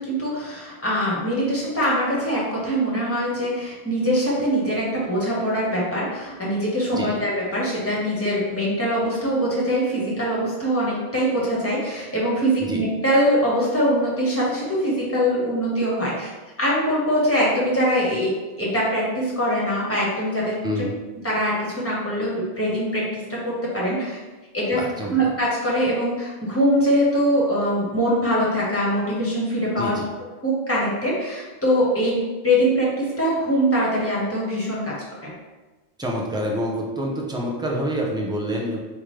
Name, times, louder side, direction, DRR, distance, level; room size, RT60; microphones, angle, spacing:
voice 1, 0.0-16.3 16.6-20.6 21.2-24.2 24.5-24.8 25.1-30.0 30.4-34.9 35.2-35.3, equal, 10° left, -6 dB, 1.3 m, -23 dB
voice 2, 20.6-20.9 24.7-25.3 29.8-30.1 36.0-38.8, equal, 5° right, -2 dB, 0.5 m, -27 dB
4.2 x 3.7 x 3.3 m, 1.2 s
omnidirectional pair, 1.1 m